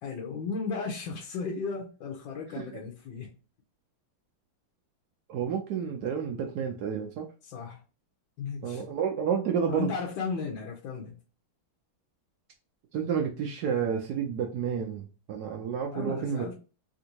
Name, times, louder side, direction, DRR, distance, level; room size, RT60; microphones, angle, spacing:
voice 1, 0.0-3.3 7.4-7.8 8.4-8.8 9.7-11.2 15.9-16.5, left 5 dB, 75° left, 1.4 m, -35 dB
voice 2, 5.3-7.3 8.6-9.9 12.9-16.5, right 7 dB, 75° right, 0.9 m, -30 dB
3.5 x 2.5 x 2.8 m
omnidirectional pair, 2.2 m